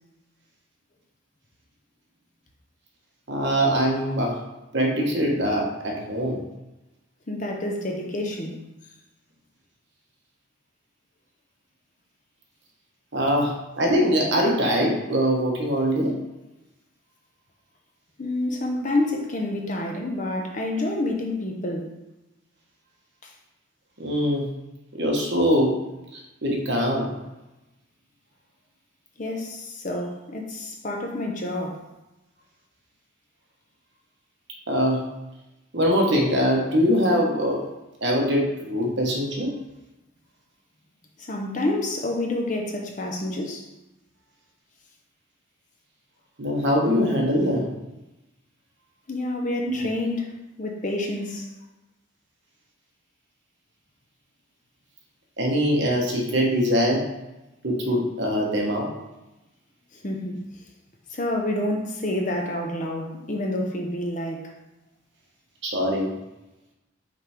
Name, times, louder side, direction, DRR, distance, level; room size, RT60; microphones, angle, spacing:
voice 1, 3.3-4.4 4.7-6.4 13.1-16.1 24.0-24.5 24.9-25.8 26.1-27.2 34.7-35.1 35.7-37.6 38.0-39.5 46.4-47.7 49.6-49.9 55.4-57.1 57.6-58.9 65.6-66.1, equal, 55° right, -1 dB, 1.3 m, -23 dB
voice 2, 7.3-8.7 18.2-21.9 23.2-23.3 29.2-31.9 41.2-43.7 49.1-51.5 59.9-60.4 61.1-64.5, left 1 dB, 35° left, 1 dB, 0.7 m, -28 dB
5.7 x 3.4 x 4.9 m, 0.99 s
head